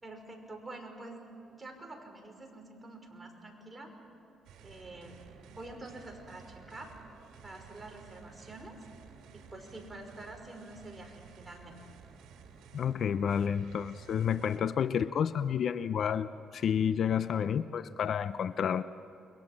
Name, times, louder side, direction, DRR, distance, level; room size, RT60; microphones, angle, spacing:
voice 1, 0.0-1.2 1.5-3.9 4.6-5.2 5.5-7.0 7.4-8.8 9.3-11.8, right 2 dB, 15° right, 2 dB, 5.6 m, -47 dB
sound 1, 4.4-14.6, right 6 dB, 85° right, 2.7 m, -54 dB
voice 2, 12.7-18.8, left 8 dB, 60° left, 13 dB, 0.7 m, -30 dB
29.0 x 23.0 x 7.6 m, 2.5 s
cardioid pair, 90°, 0 cm